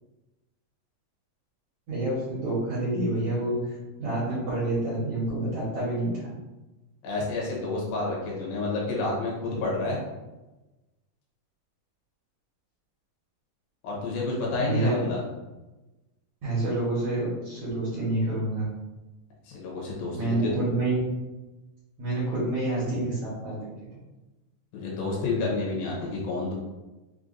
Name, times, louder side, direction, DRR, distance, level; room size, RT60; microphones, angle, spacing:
voice 1, 1.9-6.2 14.6-15.0 16.4-18.7 20.2-21.0 22.0-23.6, right 2 dB, 70° right, -8 dB, 1.7 m, -28 dB
voice 2, 7.0-10.0 13.8-15.2 19.5-20.6 24.7-26.5, left 3 dB, 75° left, -3 dB, 2.6 m, -29 dB
6.4 x 2.2 x 2.5 m, 1.1 s
omnidirectional pair, 4.4 m